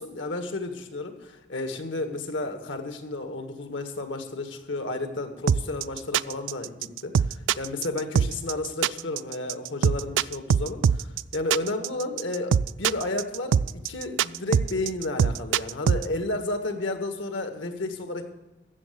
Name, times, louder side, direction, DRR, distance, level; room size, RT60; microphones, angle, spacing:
voice 1, 0.0-18.3, left 2 dB, 80° left, 7 dB, 1.5 m, -32 dB
sound 1, 5.5-16.0, right 7 dB, 80° right, 0.3 m, -22 dB
14.5 x 6.7 x 7.9 m, 1.1 s
head